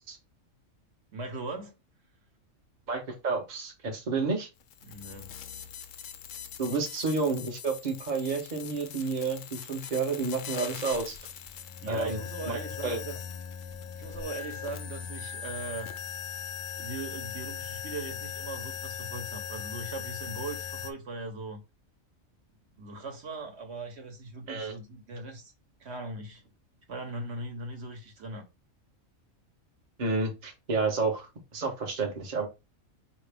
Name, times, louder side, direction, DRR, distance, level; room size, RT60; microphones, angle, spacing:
voice 1, 1.1-1.8 4.8-5.3 11.8-13.2 13.9-15.9 16.8-21.6 22.8-25.5 25.8-26.4 26.9-28.4, right 2 dB, 55° right, 1.3 m, -39 dB
voice 2, 2.9-4.5 6.6-11.2 11.9-12.2 12.5-13.0 24.5-24.7 30.0-32.5, right 4 dB, 40° right, 0.9 m, -30 dB
sound 1, 4.6-20.9, left 8 dB, 75° left, 1.0 m, -40 dB
4.8 x 2.9 x 3.4 m
omnidirectional pair, 1.4 m